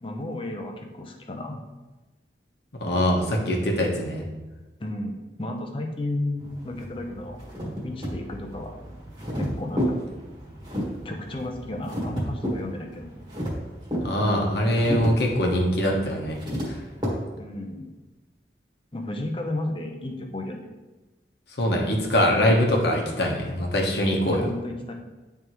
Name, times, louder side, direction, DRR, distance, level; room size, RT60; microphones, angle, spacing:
voice 1, 0.0-1.6 4.8-7.4 7.8-8.7 9.3-10.0 11.0-13.1 17.3-17.9 18.9-20.7 24.3-24.9, left 1 dB, 30° left, 3 dB, 0.6 m, -33 dB
voice 2, 2.8-4.2 14.0-16.4 21.6-24.4, equal, 70° left, 0 dB, 1.0 m, -23 dB
sound 1, 6.4-17.1, equal, 25° right, 1.4 m, -32 dB
9.4 x 3.4 x 3.0 m, 1.2 s
head